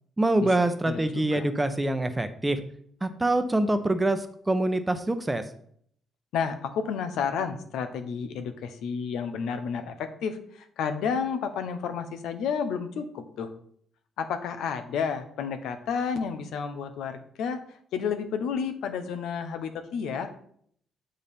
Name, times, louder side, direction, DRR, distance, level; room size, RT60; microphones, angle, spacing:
voice 1, 0.2-2.6 3.0-5.4, right 1 dB, 15° right, 8 dB, 0.8 m, -25 dB
voice 2, 0.9-1.4 6.3-13.5 14.2-17.6 17.9-20.3, left 6 dB, 85° left, 8 dB, 0.8 m, -31 dB
6.8 x 5.2 x 4.3 m, 0.63 s
cardioid pair, 90°, 0 cm